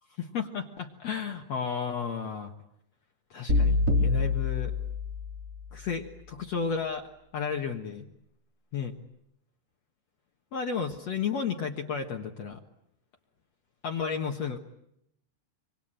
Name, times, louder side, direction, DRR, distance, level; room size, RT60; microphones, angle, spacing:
voice 1, 0.2-2.5 3.3-4.7 5.7-7.1 7.3-8.1 8.7-9.0 10.5-12.6 13.8-14.6, left 6 dB, 70° left, 3 dB, 1.6 m, -33 dB
sound 1, 3.5-5.6, left 3 dB, 20° right, 3.1 m, -26 dB
25.5 x 25.0 x 9.0 m, 0.78 s
omnidirectional pair, 5.2 m